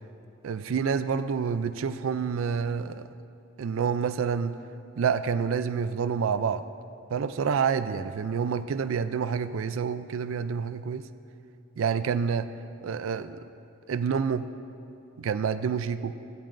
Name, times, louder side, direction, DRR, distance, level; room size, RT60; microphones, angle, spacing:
voice 1, 0.4-3.1 3.6-4.6 5.0-6.6 7.1-11.1 11.8-12.5 12.8-13.4 13.9-14.5 15.2-16.2, right 6 dB, 75° right, 11 dB, 0.4 m, -28 dB
16.0 x 14.0 x 2.6 m, 2.9 s
head